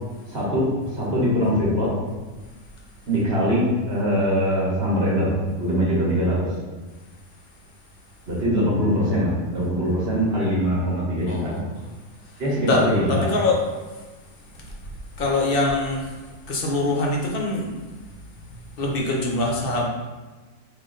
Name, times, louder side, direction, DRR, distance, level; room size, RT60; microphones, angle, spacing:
voice 1, 0.3-0.7 0.9-1.9 3.1-5.3 5.6-6.4 8.3-11.5 12.4-13.3, equal, 50° right, -6 dB, 1.3 m, -22 dB
voice 2, 11.3-11.9 12.2-17.8 18.3-19.8, left 2 dB, 55° left, -1 dB, 0.7 m, -25 dB
3.7 x 2.4 x 3.8 m, 1.3 s
omnidirectional pair, 1.4 m